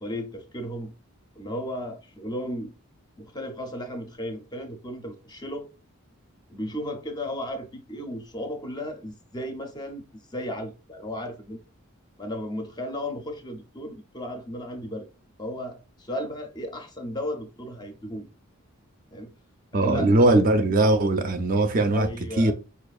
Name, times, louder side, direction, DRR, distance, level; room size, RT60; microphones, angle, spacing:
voice 1, 0.0-0.9 1.4-2.7 3.2-5.7 6.5-11.6 12.2-15.1 15.4-18.3 19.1-19.3 19.8-20.5 21.9-22.5, left 1 dB, 20° left, 0.5 m, -34 dB
voice 2, 19.7-22.1 22.4-22.5, right 2 dB, 40° right, 0.4 m, -20 dB
5.2 x 2.4 x 2.3 m
head